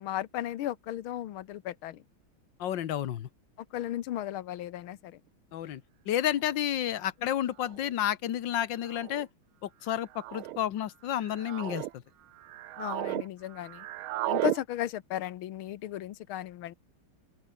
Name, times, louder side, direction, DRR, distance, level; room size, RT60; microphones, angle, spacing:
voice 1, 0.0-2.0 3.7-5.2 12.8-13.9 14.3-16.7, left 13 dB, 80° left, 1.8 m, -35 dB
voice 2, 2.6-3.3 5.5-9.3 9.6-12.0, left 11 dB, 65° left, 1.7 m, -31 dB
sound 1, 6.5-6.6 7.6-7.9 8.9-9.2 10.1-10.6 11.2-11.9 12.4-13.3 13.5-14.6, right 15 dB, 80° right, 1.5 m, -34 dB
open air
omnidirectional pair, 2.3 m